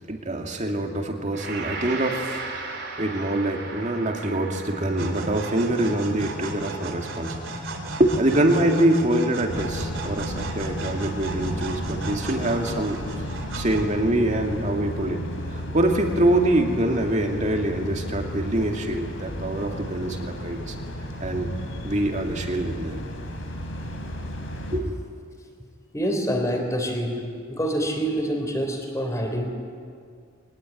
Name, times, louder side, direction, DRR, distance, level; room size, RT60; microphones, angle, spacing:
voice 1, 0.1-2.4 3.0-7.4 8.0-13.0 13.5-15.2 15.5-20.7 21.2-21.5 21.8-23.0 24.7-25.0, right 1 dB, 40° right, 2 dB, 2.4 m, -24 dB
Gong, 1.3-10.5, right 3 dB, 65° right, 4.6 m, -38 dB
sound 1, 5.0-14.2, right 2 dB, 85° right, 3.0 m, -35 dB
sound 2, 9.5-24.8, equal, 90° left, 3.7 m, -34 dB
voice 2, 25.9-27.2 27.5-29.5, equal, 15° left, 3 dB, 3.6 m, -26 dB
22.5 x 19.5 x 9.4 m, 2.1 s
head